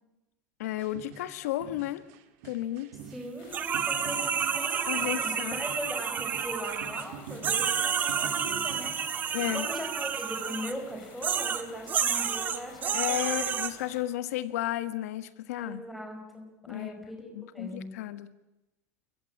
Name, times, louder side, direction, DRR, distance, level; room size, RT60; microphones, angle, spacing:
voice 1, 0.6-2.0 2.4-2.9 4.9-5.6 9.3-9.7 12.9-15.8 16.7-17.0 17.3-18.3, left 14 dB, 90° left, 13 dB, 1.5 m, -33 dB
sound 1, 0.6-8.9, right 7 dB, 60° right, 2.7 m, -47 dB
voice 2, 3.1-13.5 15.6-17.9, equal, ahead, 2 dB, 5.1 m, -40 dB
sound 2, 3.4-14.0, left 7 dB, 55° left, 4.5 m, -52 dB
sound 3, 3.5-7.0 7.4-10.7 11.2-13.7, right 7 dB, 20° right, 1.4 m, -30 dB
29.5 x 15.5 x 8.6 m, 0.96 s
supercardioid pair, 165°, 8 cm